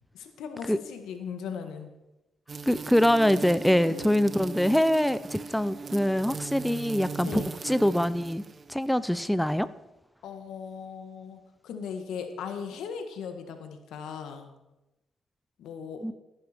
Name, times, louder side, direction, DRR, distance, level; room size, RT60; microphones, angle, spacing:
voice 1, 0.1-1.9 3.8-4.1 7.2-7.5 10.2-14.5 15.6-16.0, left 6 dB, 80° left, 6 dB, 1.7 m, -38 dB
sound 1, 2.5-8.9, right 4 dB, 45° right, 0.8 m, -39 dB
voice 2, 2.7-8.4 8.7-9.7 16.0-16.1, equal, 5° left, 15 dB, 0.5 m, -24 dB
14.0 x 10.5 x 4.5 m, 0.96 s
supercardioid pair, 60°, 0 cm